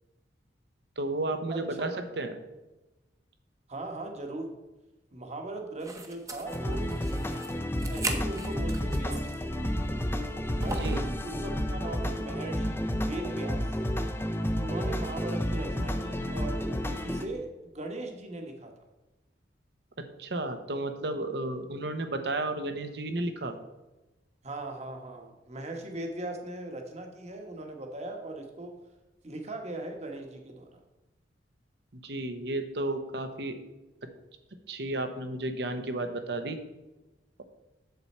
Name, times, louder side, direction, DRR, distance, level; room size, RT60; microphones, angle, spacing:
voice 1, 1.0-1.9 2.2-2.4 10.6-11.1 20.2-23.5 32.0-33.6 34.7-36.6, right 2 dB, 65° right, 7 dB, 1.0 m, -32 dB
voice 2, 1.5-2.0 3.7-4.5 5.1-6.9 7.9-9.4 10.5-13.8 14.6-16.7 17.0-18.7 24.4-28.7 29.2-30.8, right 2 dB, 40° right, 3 dB, 1.3 m, -39 dB
sound 1, 5.8-9.5 9.8-9.9 10.6-11.1, right 3 dB, 20° right, 0.9 m, -38 dB
sound 2, 6.5-17.2, equal, 15° left, 0.6 m, -31 dB
7.8 x 7.1 x 4.3 m, 1.0 s
head